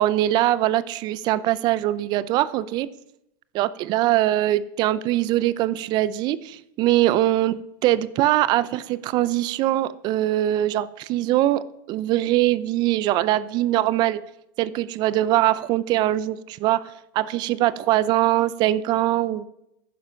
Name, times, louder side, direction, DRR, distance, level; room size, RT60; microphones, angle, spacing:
voice 1, 0.0-2.9 3.5-14.2 14.6-19.5, right 14 dB, 45° right, 17 dB, 0.5 m, -22 dB
10.0 x 10.0 x 5.7 m, 0.83 s
hypercardioid pair, 110°, 11 cm